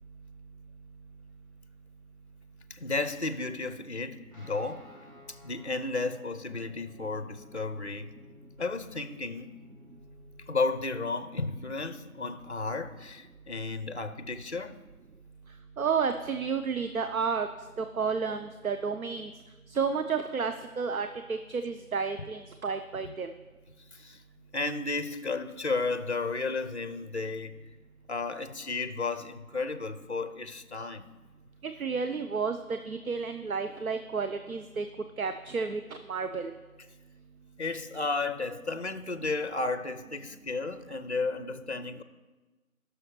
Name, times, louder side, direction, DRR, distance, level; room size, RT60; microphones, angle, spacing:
voice 1, 2.7-4.9 5.3-8.2 8.6-9.5 10.5-14.8 23.0-23.1 23.9-24.2 24.5-27.6 28.1-31.1 37.6-42.0, left 3 dB, 50° left, 0.5 m, -33 dB
Guitar, 4.3-12.4, left 4 dB, 10° left, 2.4 m, -55 dB
voice 2, 15.8-17.5 17.8-19.3 19.7-23.3 31.6-34.9 35.2-35.8 36.1-36.5, right 5 dB, 70° right, 0.6 m, -31 dB
16.5 x 6.4 x 3.1 m
figure-of-eight pair, 170°, 44 cm